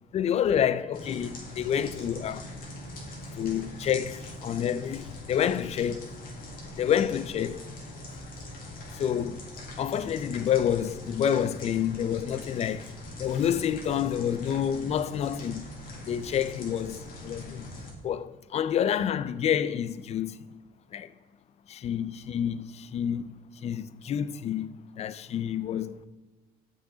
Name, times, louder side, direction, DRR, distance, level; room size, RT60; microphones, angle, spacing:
voice 1, 0.1-2.5 3.3-6.1 6.8-7.7 8.9-9.4 9.8-12.9 13.2-15.7 16.1-17.7 18.0-20.3 20.9-21.1 21.7-23.3 23.6-26.0, left 9 dB, 40° left, 0.4 m, -28 dB
sound 1, 0.9-17.9, left 1 dB, 60° left, 2.0 m, -42 dB
7.1 x 5.5 x 3.8 m
cardioid pair, 110°, 17 cm